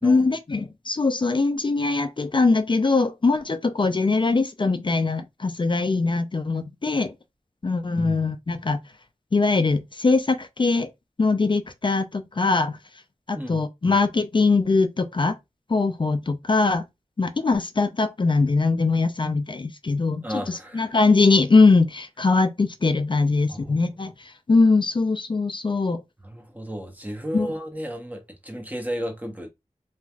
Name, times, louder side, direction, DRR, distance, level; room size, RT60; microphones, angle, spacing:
voice 1, 0.0-7.1 7.6-8.8 9.3-10.9 11.2-12.8 13.3-15.4 15.7-16.8 17.2-26.0 27.3-27.5, left 3 dB, 40° left, 0.4 m, -22 dB
voice 2, 13.3-13.9 20.2-20.9 23.5-23.9 26.2-29.5, equal, 10° right, 0.8 m, -34 dB
3.1 x 2.5 x 2.2 m
wide cardioid pair, 60°, 13 cm